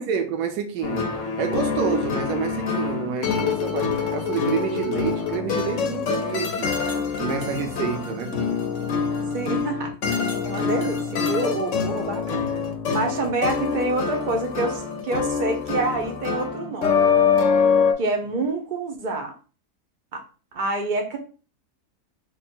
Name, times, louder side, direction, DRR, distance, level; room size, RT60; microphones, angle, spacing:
voice 1, 0.0-6.8 7.2-8.4, right 7 dB, 75° right, 1.1 m, -28 dB
sound 1, 0.8-17.9, left 6 dB, 60° left, 0.9 m, -25 dB
voice 2, 9.3-12.4 12.9-17.2 18.0-19.3 20.1-20.2 20.5-21.2, right 2 dB, 50° right, 0.6 m, -27 dB
3.3 x 2.2 x 4.3 m
omnidirectional pair, 1.7 m